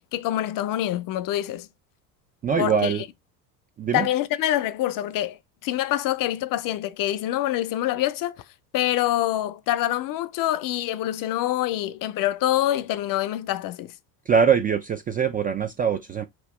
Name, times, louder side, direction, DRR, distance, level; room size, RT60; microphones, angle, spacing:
voice 1, 0.1-1.7 2.6-3.0 3.9-8.4 8.7-13.9, left 13 dB, 45° left, 0.6 m, -25 dB
voice 2, 2.4-3.0 3.8-4.1 14.3-16.2, right 6 dB, 20° right, 0.3 m, -22 dB
4.6 x 3.1 x 3.1 m
hypercardioid pair, 75°, 50 cm